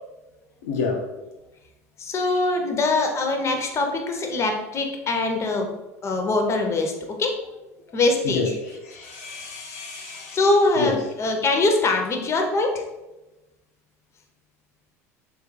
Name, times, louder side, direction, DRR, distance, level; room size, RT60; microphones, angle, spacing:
voice 1, 0.6-1.0 8.2-8.5 8.9-10.4 10.8-10.9, left 4 dB, 75° left, 1 dB, 0.4 m, -28 dB
voice 2, 2.0-5.7 6.0-7.3 7.9-8.6 10.3-12.8, left 2 dB, 35° left, 3 dB, 0.6 m, -23 dB
3.3 x 2.3 x 3.1 m, 1.0 s
hypercardioid pair, 75°, 8 cm